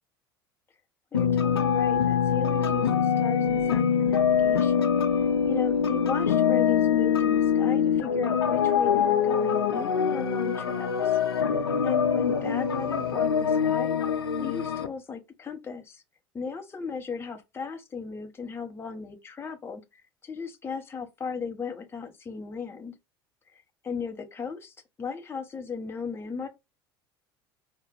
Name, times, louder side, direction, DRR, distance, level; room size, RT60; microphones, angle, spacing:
sound 1, 1.1-14.9, left 7 dB, 80° left, 0.5 m, -24 dB
voice 1, 1.1-5.0 5.4-11.5 11.8-16.0 16.3-22.9 23.8-26.5, left 5 dB, 20° left, 0.8 m, -37 dB
4.7 x 2.2 x 3.2 m
figure-of-eight pair, 70°, 13 cm